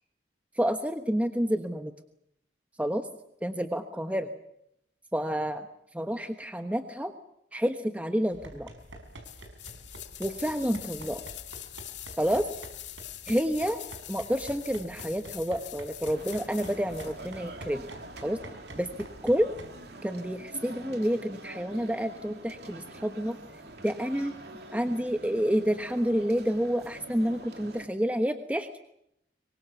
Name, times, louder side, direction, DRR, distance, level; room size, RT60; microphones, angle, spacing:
voice 1, 0.5-1.9 2.8-3.1 3.4-4.3 5.1-5.7 5.9-7.2 7.5-8.7 10.2-11.2 12.1-12.5 13.3-17.8 18.2-18.4 18.7-19.6 20.0-23.4 23.8-24.3 24.7-28.8, equal, 10° right, 7 dB, 1.2 m, -29 dB
sound 1, 8.3-19.7, right 1 dB, 85° right, 5.7 m, -48 dB
sound 2, 9.2-17.2 17.5-17.6, left 14 dB, 75° left, 2.1 m, -44 dB
sound 3, 16.1-27.9, right 2 dB, 60° right, 3.2 m, -46 dB
25.5 x 24.0 x 7.0 m, 0.76 s
head